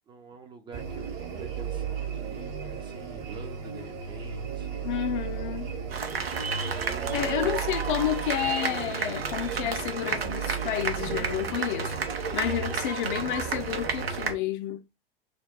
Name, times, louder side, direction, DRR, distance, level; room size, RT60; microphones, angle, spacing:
voice 1, 0.1-4.9 6.3-7.7, right 5 dB, 15° right, 0.4 m, -47 dB
sound 1, 0.7-14.3, right 6 dB, 50° right, 1.0 m, -35 dB
voice 2, 4.8-5.7 7.1-14.8, left 11 dB, 55° left, 0.4 m, -30 dB
sound 2, 5.9-14.3, right 6 dB, 85° right, 0.6 m, -32 dB
2.3 x 2.2 x 3.5 m
figure-of-eight pair, 95°, 29 cm